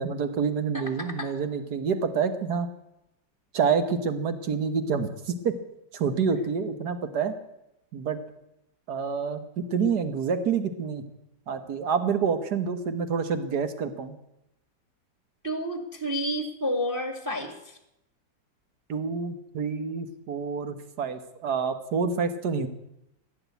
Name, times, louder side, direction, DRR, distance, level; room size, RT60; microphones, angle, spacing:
voice 1, 0.0-2.7 3.5-5.6 5.9-7.3 7.9-8.2 8.9-11.1 11.5-14.2 18.9-22.7, right 6 dB, 60° right, 9 dB, 1.8 m, -28 dB
voice 2, 0.7-1.3 15.4-17.5, equal, 10° right, 6 dB, 1.7 m, -30 dB
15.5 x 10.5 x 8.3 m, 0.85 s
omnidirectional pair, 2.0 m